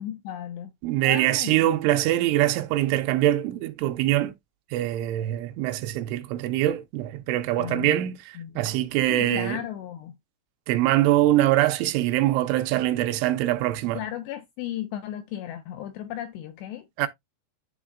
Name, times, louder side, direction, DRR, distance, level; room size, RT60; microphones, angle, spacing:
voice 1, 0.0-0.7 1.0-1.7 7.6-8.0 8.4-8.7 9.1-10.1 14.0-16.9, left 11 dB, 85° left, 2.5 m, -35 dB
voice 2, 0.8-4.4 4.7-9.6 10.7-14.0 17.0-17.1, right 14 dB, 85° right, 3.0 m, -23 dB
11.5 x 3.8 x 2.3 m
omnidirectional pair, 5.5 m